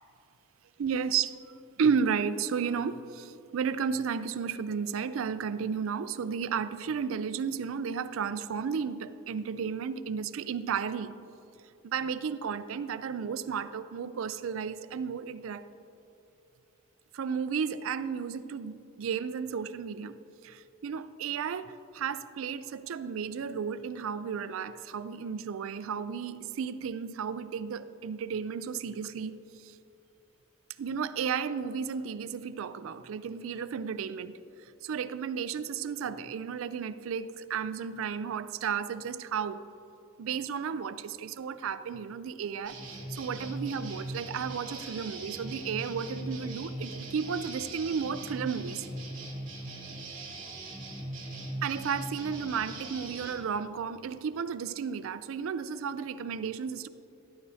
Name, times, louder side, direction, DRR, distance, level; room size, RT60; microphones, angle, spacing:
voice 1, 0.8-11.2 11.8-15.7 17.1-20.1 20.4-29.7 30.8-34.3 34.8-39.6 40.2-42.8 43.1-48.9 51.6-56.9, right 6 dB, 65° right, 13 dB, 0.4 m, -33 dB
sound 1, 42.6-53.3, right 1 dB, 35° right, 2.2 m, -40 dB
12.5 x 11.5 x 2.8 m, 2.8 s
head